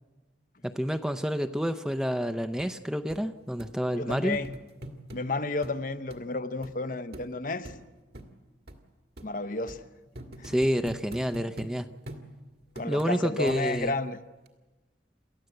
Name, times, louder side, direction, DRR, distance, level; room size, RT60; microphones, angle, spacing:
voice 1, 0.6-4.4 10.4-11.9 12.8-13.9, equal, 5° right, 0.6 m, -29 dB
sound 1, 2.6-2.7 3.1-3.2 3.6-3.7 4.1-5.2 5.6-5.8 6.1-6.2 6.6-6.7 7.1-7.3 7.6-7.8 8.1-8.3 8.7-8.8 9.2-9.3 9.7-9.8 10.1-11.7 12.1-12.2 12.8-13.1 13.5-13.9 14.5-14.6, right 1 dB, 55° right, 2.0 m, -42 dB
voice 2, 4.0-4.5 5.1-7.7 9.2-9.8 10.4-10.5 12.8-14.2, left 2 dB, 45° left, 0.8 m, -32 dB
28.5 x 14.0 x 7.9 m
head